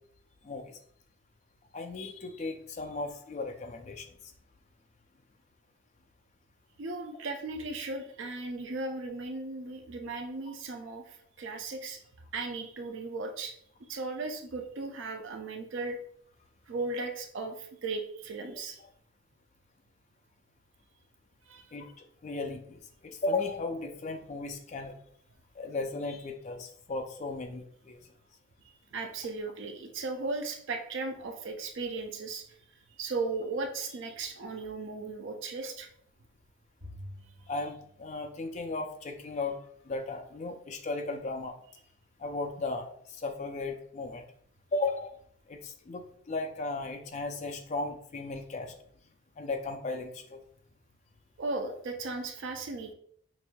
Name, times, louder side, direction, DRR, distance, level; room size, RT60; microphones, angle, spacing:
voice 1, 0.4-0.8 1.7-4.1 21.7-24.9 25.6-28.0 37.5-39.6 39.9-41.6 42.2-44.2 44.7-45.1 45.5-48.7 49.4-50.4, left 3 dB, 35° left, 4 dB, 0.4 m, -36 dB
voice 2, 6.8-12.0 12.3-13.5 13.9-16.0 16.7-18.8 21.5-21.7 28.9-32.5 32.9-35.9 51.4-52.9, right 3 dB, 65° right, 4 dB, 0.5 m, -36 dB
Bowed string instrument, 36.8-39.2, left 1 dB, 85° right, 1.6 m, -50 dB
5.9 x 2.6 x 2.2 m, 0.66 s
head